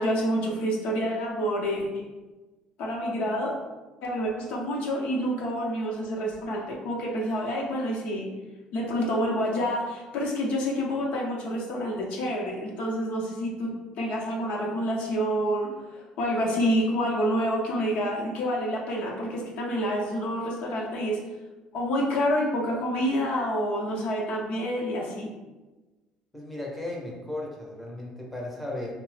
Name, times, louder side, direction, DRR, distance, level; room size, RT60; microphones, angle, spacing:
voice 1, 0.0-2.0 2.8-3.5 4.0-8.3 8.7-13.7 14.0-21.2 21.7-25.3, equal, 75° left, -2 dB, 0.6 m, -28 dB
voice 2, 26.3-28.9, left 1 dB, ahead, -3 dB, 0.6 m, -35 dB
2.7 x 2.0 x 3.1 m, 1.2 s
cardioid pair, 115°, 2 cm